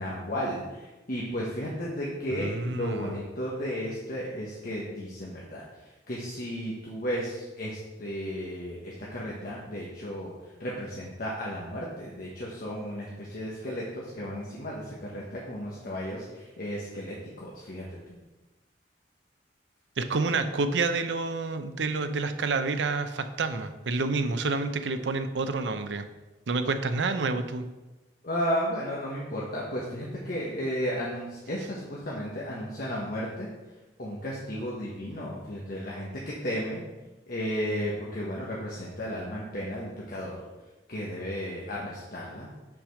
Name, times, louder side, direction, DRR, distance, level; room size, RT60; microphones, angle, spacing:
voice 1, 0.0-18.2 28.2-33.5 34.0-36.8 37.3-40.4 40.9-42.5, equal, 55° left, -5 dB, 1.3 m, -34 dB
voice 2, 2.3-3.1 20.0-26.0 26.5-27.6, right 3 dB, 80° right, 9 dB, 0.6 m, -28 dB
5.9 x 5.0 x 6.3 m, 1.1 s
head